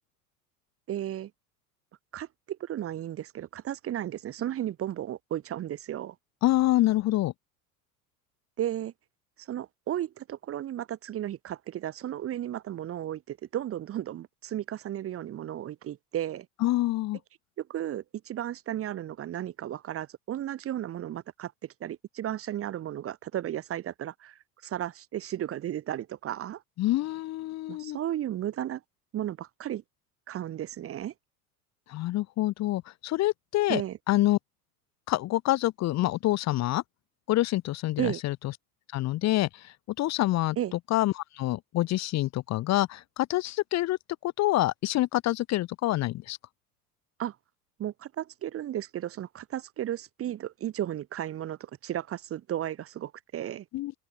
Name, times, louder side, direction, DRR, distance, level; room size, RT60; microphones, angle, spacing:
voice 1, 0.9-1.3 2.1-6.1 8.6-8.9 9.5-16.5 17.6-26.6 27.7-28.8 29.1-29.8 30.3-31.1 33.7-34.0 38.0-38.2 40.6-40.7 47.2-47.3 47.8-53.6, right 11 dB, 30° right, 1.2 m, -34 dB
voice 2, 6.4-7.3 16.6-17.2 26.8-28.0 31.9-33.8 34.1-34.4 35.1-36.8 37.3-38.5 38.9-44.0 44.2-46.4 53.7-53.9, left 16 dB, 35° left, 1.1 m, -27 dB
open air
figure-of-eight pair, 75°, 46 cm